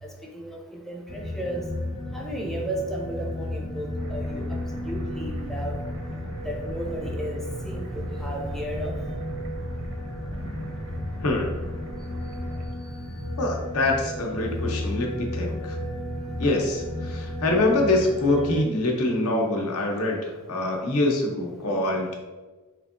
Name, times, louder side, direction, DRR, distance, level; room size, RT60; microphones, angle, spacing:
voice 1, 0.0-1.7 2.1-5.8 6.4-9.0 12.8-12.9, right 1 dB, ahead, 0 dB, 0.4 m, -34 dB
sound 1, 1.1-18.6, left 1 dB, 40° left, 0.8 m, -33 dB
sound 2, 3.9-12.7, right 1 dB, 65° right, 0.6 m, -40 dB
voice 2, 11.2-11.5 13.4-15.8 16.4-22.1, left 2 dB, 80° left, 1 dB, 0.7 m, -25 dB
3.4 x 3.1 x 2.5 m, 1.3 s
head